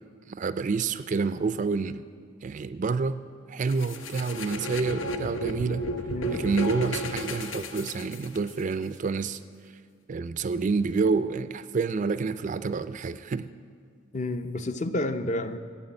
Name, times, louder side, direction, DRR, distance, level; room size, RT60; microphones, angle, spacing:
voice 1, 0.3-2.1 2.4-3.2 3.5-5.8 6.3-9.4 10.1-13.5, right 4 dB, 40° right, 13 dB, 0.3 m, -28 dB
sound 1, 3.7-8.6, equal, 75° left, 0.8 m, -33 dB
voice 2, 14.1-15.6, left 1 dB, 35° left, 9 dB, 0.6 m, -30 dB
13.0 x 7.3 x 9.7 m, 2.1 s
head